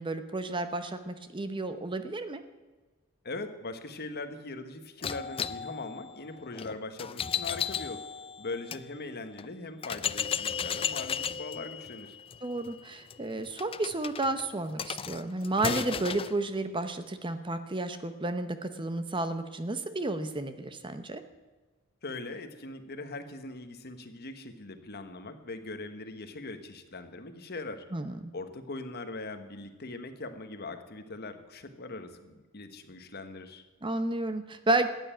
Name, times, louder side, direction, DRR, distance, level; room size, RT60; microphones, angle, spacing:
voice 1, 0.0-2.4 12.4-21.2 27.9-28.3 33.8-34.9, right 2 dB, 20° right, 10 dB, 0.8 m, -32 dB
voice 2, 3.2-8.0 8.4-12.2 22.0-27.9 28.3-33.6, left 3 dB, 45° left, 8 dB, 1.3 m, -41 dB
sound 1, 5.0-8.8 9.4-9.5 9.8-16.4, left 7 dB, 25° left, 0.4 m, -35 dB
13.5 x 9.2 x 9.0 m, 1.3 s
head